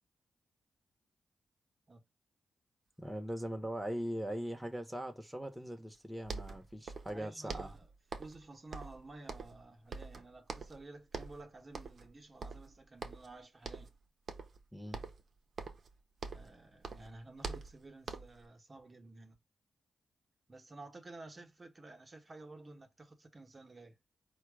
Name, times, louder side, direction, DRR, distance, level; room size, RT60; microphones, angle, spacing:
voice 1, 3.0-7.7 14.7-15.0, equal, 5° right, 1.0 m, -40 dB
sound 1, 5.9-6.0 6.2-7.2 7.5-8.4 8.7-9.6 9.9-10.8 11.1-11.4 11.7-12.1 12.4-13.3 13.6-14.0 14.3-14.6 14.9-16.6 16.8-18.4, right 4 dB, 60° right, 0.7 m, -44 dB
voice 2, 7.1-7.9 8.2-13.9 16.3-19.4 20.5-24.0, right 2 dB, 40° right, 1.0 m, -52 dB
4.5 x 2.3 x 4.7 m
cardioid pair, 65°, 0 cm